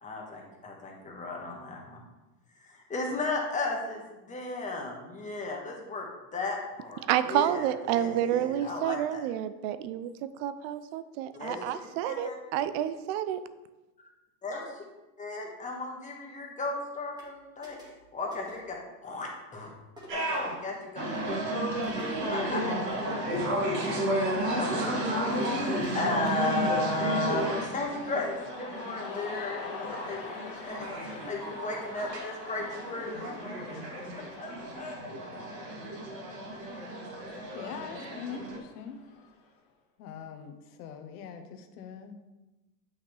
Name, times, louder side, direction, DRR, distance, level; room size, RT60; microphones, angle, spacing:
voice 1, 0.0-2.0 2.6-9.2 11.3-12.4 14.4-14.8 15.2-17.8 18.1-19.7 20.1-21.7 22.3-23.5 23.9-24.1 24.5-25.3 25.6-33.8 34.4-35.0, left 2 dB, 15° left, 0 dB, 1.5 m, -35 dB
voice 2, 7.1-13.4, right 11 dB, 40° right, 13 dB, 0.5 m, -29 dB
sound 1, 17.2-17.3 17.6-18.0 18.3-18.7 20.0-20.4 21.9-22.3, equal, 10° right, 2.0 m, -50 dB
sound 2, 20.1-38.6, right 1 dB, 80° right, 2.5 m, -33 dB
Cheering, 24.7-39.5, left 5 dB, 45° left, 1.6 m, -47 dB
voice 3, 37.5-39.0 40.0-42.1, left 7 dB, 65° left, 7 dB, 1.2 m, -43 dB
8.8 x 5.7 x 3.4 m, 1.1 s
hypercardioid pair, 120°, 48 cm